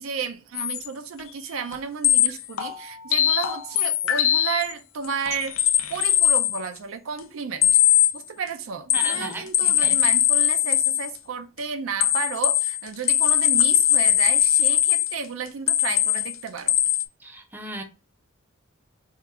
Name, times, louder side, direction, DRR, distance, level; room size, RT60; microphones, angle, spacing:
voice 1, 0.0-5.6 5.9-7.8 8.1-16.8, right 6 dB, 70° right, 0.4 m, -32 dB
sound 1, 0.5-0.9 1.7-1.8 2.0-4.7 5.0-6.6 7.6-8.2 8.9-11.1 12.0-15.2 15.7-16.3 16.7-17.0, left 12 dB, 70° left, 0.4 m, -21 dB
voice 2, 8.9-10.0 17.2-17.8, right 1 dB, 10° right, 0.6 m, -35 dB
3.7 x 2.3 x 4.2 m
head